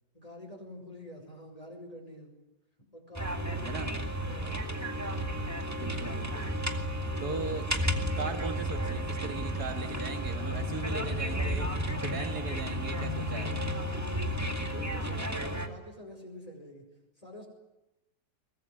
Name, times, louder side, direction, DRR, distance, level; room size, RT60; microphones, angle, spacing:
voice 1, 0.1-2.4 2.9-3.8 4.1-4.6 14.7-16.9 17.2-17.5, left 1 dB, 20° left, 1 dB, 5.4 m, -46 dB
sound 1, 3.1-15.7, equal, 10° right, 2.0 m, -33 dB
voice 2, 5.8-6.6 7.2-7.7 8.2-13.6, right 4 dB, 65° right, 6 dB, 2.4 m, -39 dB
sound 2, 10.4-15.5, left 6 dB, 35° left, 1.1 m, -42 dB
23.0 x 19.5 x 9.9 m, 0.97 s
omnidirectional pair, 1.8 m